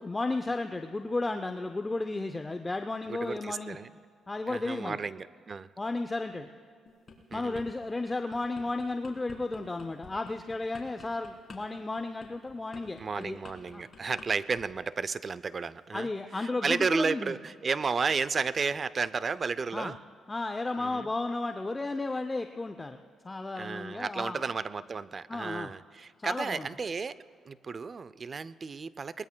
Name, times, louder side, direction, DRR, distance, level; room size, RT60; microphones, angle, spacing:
voice 1, 0.0-3.8 4.3-5.0 5.8-6.5 7.3-13.4 13.7-13.9 15.9-17.3 19.7-19.9 20.3-23.0 23.2-24.4 25.3-25.7 26.2-26.7, left 2 dB, 20° left, 6 dB, 0.5 m, -33 dB
voice 2, 3.1-3.9 4.5-5.7 7.3-7.6 13.0-16.1 16.4-20.0 20.8-21.1 23.6-27.2 27.5-29.2, right 5 dB, 40° right, 17 dB, 0.4 m, -33 dB
sound 1, 6.9-7.7 8.1-14.3 14.5-14.8, left 4 dB, 40° left, 3.3 m, -50 dB
21.0 x 20.0 x 2.3 m, 2.3 s
cardioid pair, 90°, 0 cm